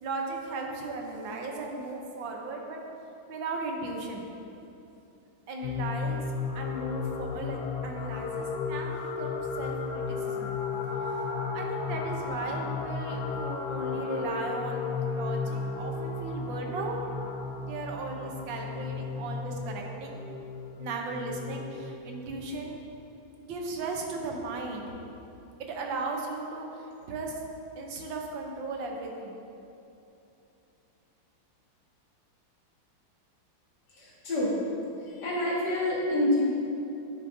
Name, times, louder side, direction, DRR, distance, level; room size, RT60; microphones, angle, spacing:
voice 1, 0.0-2.8 3.3-4.3 5.5-6.2 6.5-10.6 11.5-14.8 15.1-17.0 17.6-20.2 20.8-22.8 23.4-24.9 25.6-27.4 27.7-29.3, right 3 dB, 70° right, 1 dB, 1.5 m, -36 dB
sound 1, 5.6-22.0, left 5 dB, 75° left, 1.0 m, -34 dB
voice 2, 33.9-34.5 35.0-36.4, left 1 dB, 55° left, -6 dB, 2.2 m, -28 dB
10.0 x 7.0 x 2.7 m, 2.8 s
omnidirectional pair, 2.2 m